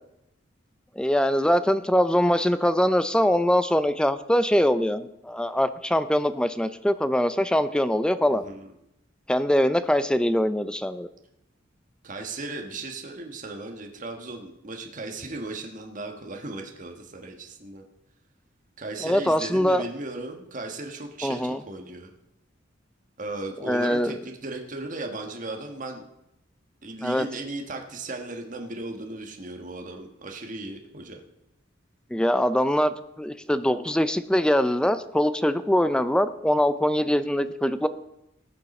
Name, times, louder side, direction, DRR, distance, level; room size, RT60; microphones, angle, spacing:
voice 1, 1.0-8.4 9.3-11.1 19.0-19.8 21.2-21.6 23.6-24.1 27.0-27.3 32.1-37.9, equal, 5° left, 12 dB, 0.5 m, -23 dB
voice 2, 8.3-8.7 12.0-17.8 18.8-22.1 23.2-26.0 26.8-31.2, right 2 dB, 40° right, 3 dB, 1.4 m, -36 dB
19.0 x 6.7 x 4.3 m, 0.84 s
head